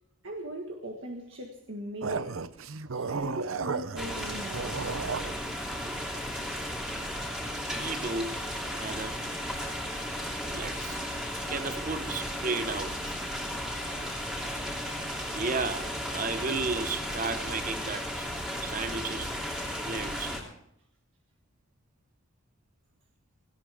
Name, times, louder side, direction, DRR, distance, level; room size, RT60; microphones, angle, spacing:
voice 1, 0.2-2.5 2.9-4.9, right 1 dB, 70° right, 1.7 m, -39 dB
sound 1, 2.0-5.4, right 5 dB, 85° right, 0.7 m, -34 dB
sound 2, 4.0-20.4, equal, 5° right, 3.0 m, -35 dB
voice 2, 7.8-8.4 8.7-9.2 9.9-10.1 10.5-11.0 11.5-13.2 15.3-18.3 18.6-19.4 19.9-20.4, right 4 dB, 40° right, 0.8 m, -34 dB
18.0 x 17.0 x 3.5 m
head